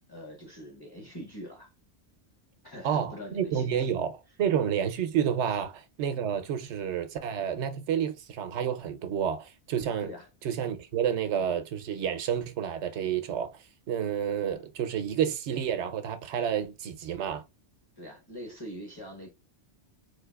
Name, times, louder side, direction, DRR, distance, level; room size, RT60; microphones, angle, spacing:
voice 1, 0.0-1.7 2.6-4.0 5.5-5.6 10.0-10.3 18.0-19.3, equal, 25° left, 0.7 m, -43 dB
voice 2, 2.8-4.1 4.4-10.1 10.4-13.5 13.9-17.4, right 8 dB, 80° right, 0.9 m, -29 dB
3.9 x 2.7 x 2.2 m
omnidirectional pair, 1.2 m